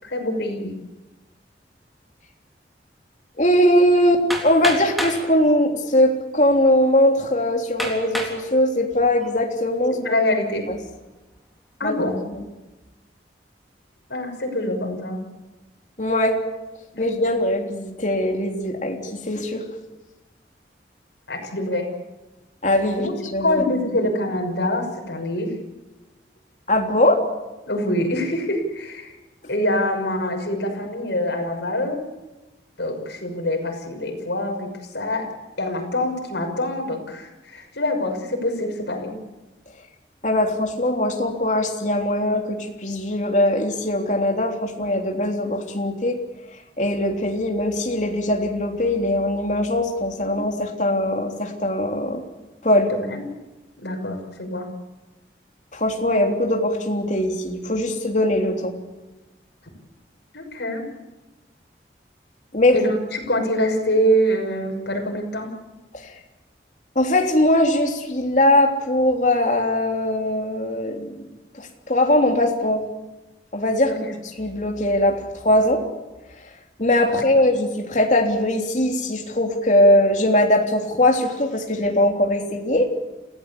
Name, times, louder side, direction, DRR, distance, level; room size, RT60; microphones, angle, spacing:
voice 1, 0.0-0.7 10.0-10.7 11.8-12.1 14.1-15.2 16.9-17.0 21.3-21.9 22.9-23.1 23.4-25.6 27.7-29.1 29.5-32.0 32.8-35.3 35.6-39.1 50.2-50.4 52.9-53.3 53.8-54.7 60.3-60.8 62.7-65.5 73.9-74.1 77.1-77.2, left 1 dB, 80° left, 2 dB, 6.2 m, -25 dB
voice 2, 3.4-10.0 10.7-10.8 11.8-12.0 12.3-12.4 16.0-16.4 17.0-19.6 22.6-23.6 26.7-27.2 40.2-46.2 46.8-52.2 52.6-52.9 55.7-58.7 62.5-62.8 65.9-66.1 67.0-71.2 71.5-72.8 73.5-73.9 74.4-75.8 76.8-82.9, left 1 dB, 45° left, 2 dB, 3.5 m, -20 dB
Hammer, 4.3-5.2 6.1-6.2 6.8-6.9 7.8-8.4 9.0-9.4, equal, ahead, 3.7 m, -28 dB
28.0 x 16.5 x 8.6 m, 1.1 s
head